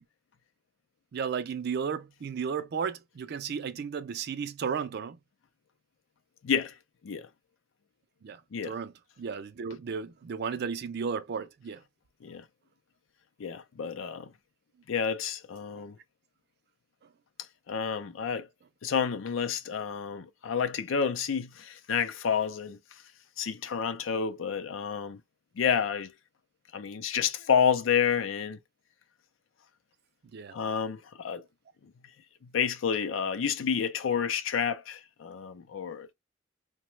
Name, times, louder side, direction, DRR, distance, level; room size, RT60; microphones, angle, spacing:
voice 1, 1.1-5.2 8.2-11.8 30.3-30.6, right 6 dB, 55° right, 0.4 m, -34 dB
voice 2, 13.4-14.3 14.9-16.0 17.7-18.5 18.8-22.8 23.4-25.2 25.6-26.1 26.7-28.6 30.5-31.4 32.4-36.1, left 7 dB, 85° left, 0.5 m, -29 dB
2.9 x 2.1 x 3.1 m
head